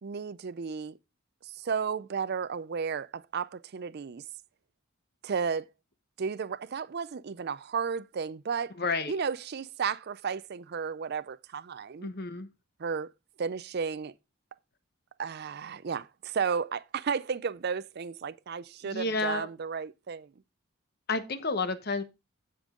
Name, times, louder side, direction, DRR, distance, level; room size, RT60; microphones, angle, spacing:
voice 1, 0.0-1.0 1.4-4.2 5.2-5.7 6.2-8.7 9.1-12.1 12.8-13.1 13.4-14.1 15.2-20.3, right 6 dB, 50° right, 0.4 m, -33 dB
voice 2, 8.8-9.1 12.0-12.5 18.8-19.5 21.1-22.0, left 3 dB, 50° left, 1.0 m, -30 dB
15.5 x 5.2 x 3.7 m
head